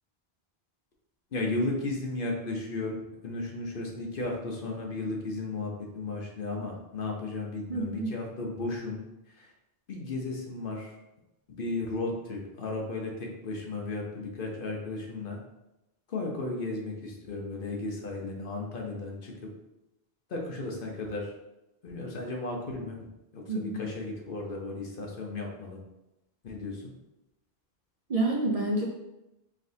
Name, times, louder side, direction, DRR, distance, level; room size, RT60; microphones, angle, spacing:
voice 1, 1.3-3.0 3.2-9.0 9.3-9.5 9.9-11.0 11.5-15.4 16.1-19.3 20.3-21.3 21.8-23.0 23.3-25.8 26.4-26.9, left 2 dB, 60° left, 0 dB, 0.9 m, -34 dB
voice 2, 7.7-8.1 23.5-23.9 28.1-28.9, right 2 dB, 50° right, -1 dB, 0.5 m, -28 dB
4.6 x 3.3 x 2.7 m, 0.94 s
omnidirectional pair, 1.0 m